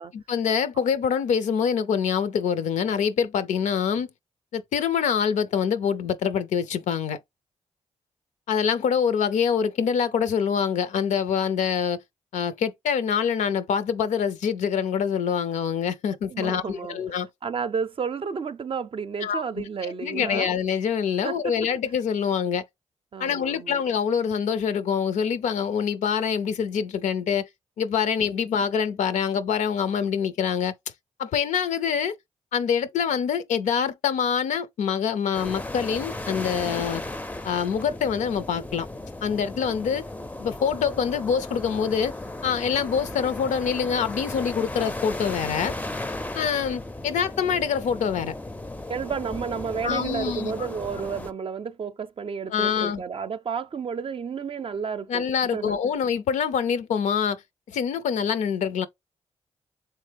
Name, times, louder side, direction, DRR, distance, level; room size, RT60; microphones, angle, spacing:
voice 1, 0.1-4.1 4.5-7.2 8.5-12.0 12.3-17.3 19.2-22.6 23.2-27.5 27.8-30.8 31.2-32.2 32.5-37.0 37.4-38.9 39.2-40.1 40.4-42.1 42.4-45.7 46.3-48.3 49.8-50.7 52.5-53.0 55.1-57.4 57.7-58.9, left 7 dB, 80° left, 0.5 m, -25 dB
voice 2, 16.3-17.0 17.4-20.5 21.2-21.4 23.1-23.8 48.9-55.8, right 6 dB, 45° right, 0.5 m, -31 dB
sound 1, 35.3-51.3, left 2 dB, 10° left, 0.5 m, -35 dB
3.6 x 3.2 x 3.3 m
supercardioid pair, 50°, 13 cm